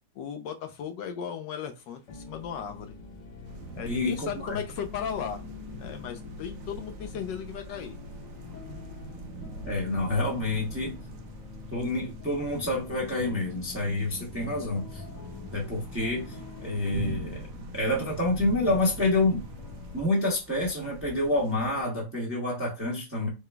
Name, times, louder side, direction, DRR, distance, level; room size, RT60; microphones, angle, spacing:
voice 1, 0.1-3.0 3.7-5.4 5.8-8.0, left 8 dB, 75° left, 6 dB, 1.2 m, -36 dB
sound 1, 2.1-20.0, left 4 dB, 50° left, 1.3 m, -44 dB
sound 2, 3.5-21.8, right 4 dB, 80° right, 1.3 m, -44 dB
voice 2, 3.8-4.6 9.6-10.9 11.7-15.0 15.5-16.3 16.6-17.5 17.7-19.4 19.9-23.3, left 2 dB, 10° right, -3 dB, 0.7 m, -28 dB
4.9 x 2.2 x 3.3 m, 0.27 s
omnidirectional pair, 2.1 m